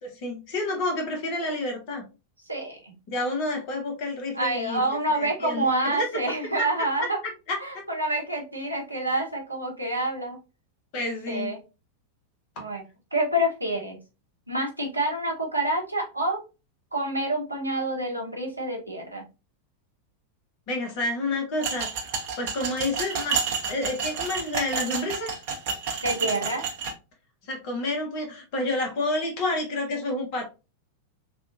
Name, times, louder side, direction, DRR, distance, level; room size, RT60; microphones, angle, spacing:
voice 1, 0.0-2.0 3.1-4.8 5.1-6.1 6.6-6.7 7.0-7.1 7.5-7.8 10.9-11.5 20.7-21.9 22.4-23.4 23.7-25.3 27.4-30.5, left 2 dB, 45° left, 3 dB, 1.0 m, -29 dB
voice 2, 2.5-2.9 4.3-7.2 7.6-10.4 11.3-11.6 12.6-12.8 13.1-14.0 14.5-16.4 16.9-19.2 26.0-26.6, right 1 dB, 85° right, 0 dB, 0.9 m, -27 dB
sound 1, 21.6-26.9, right 5 dB, 50° right, 0.8 m, -30 dB
3.5 x 2.4 x 2.5 m, 0.30 s
figure-of-eight pair, 90°, 0 cm